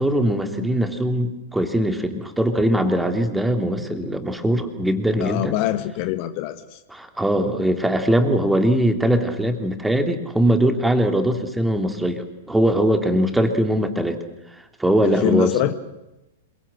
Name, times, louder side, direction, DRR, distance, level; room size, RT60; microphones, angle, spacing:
voice 1, 0.0-5.6 6.9-14.2 14.8-15.5, right 1 dB, 5° right, 6 dB, 3.0 m, -21 dB
voice 2, 5.2-6.8 15.0-15.7, left 14 dB, 40° left, 11 dB, 1.4 m, -24 dB
27.0 x 23.5 x 7.8 m, 0.95 s
figure-of-eight pair, 100°, 0 cm